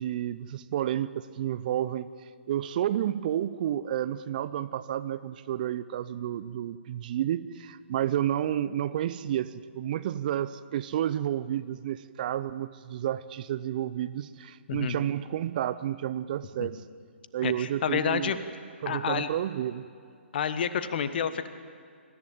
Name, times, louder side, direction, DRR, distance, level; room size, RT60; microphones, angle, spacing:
voice 1, 0.0-2.1 2.5-16.8 17.3-18.3 18.8-19.9, right 11 dB, 40° right, 15 dB, 0.7 m, -30 dB
voice 2, 17.4-18.4 18.9-19.3 20.3-21.5, left 8 dB, 50° left, 11 dB, 1.4 m, -29 dB
25.0 x 14.5 x 9.1 m, 2.3 s
figure-of-eight pair, 130°, 7 cm